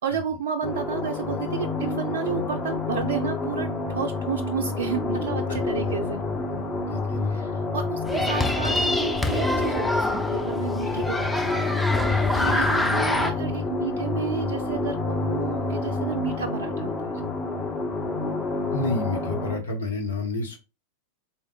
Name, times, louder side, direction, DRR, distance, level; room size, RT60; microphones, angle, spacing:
voice 1, 0.0-6.2 7.3-11.8 12.1-17.2, right 7 dB, 60° right, 5 dB, 0.4 m, -32 dB
sound 1, 0.6-19.6, left 3 dB, 20° left, 1.0 m, -28 dB
voice 2, 5.5-5.9 6.5-7.4 8.0-8.3 11.2-11.3 12.3-12.5 18.7-20.6, left 2 dB, 65° left, 4 dB, 1.1 m, -31 dB
sound 2, 8.1-13.3, left 1 dB, 5° left, 0.5 m, -26 dB
4.2 x 3.6 x 2.4 m, 0.28 s
figure-of-eight pair, 90°, 0 cm